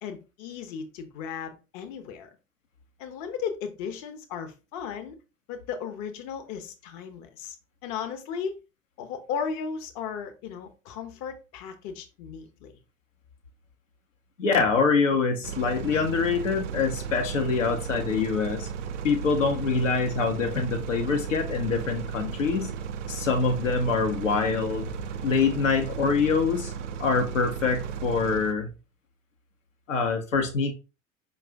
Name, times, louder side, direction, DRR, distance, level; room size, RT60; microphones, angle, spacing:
voice 1, 0.0-2.3 3.0-5.2 5.5-7.6 7.8-8.6 9.0-12.7, left 6 dB, 45° left, 0.7 m, -35 dB
voice 2, 14.4-18.7 19.0-22.7 23.1-24.9 25.2-26.7 27.0-28.7 29.9-30.7, left 5 dB, 80° left, 0.7 m, -25 dB
sound 1, 15.4-28.5, right 7 dB, 70° right, 0.5 m, -35 dB
4.8 x 2.3 x 3.4 m
figure-of-eight pair, 70°, 38 cm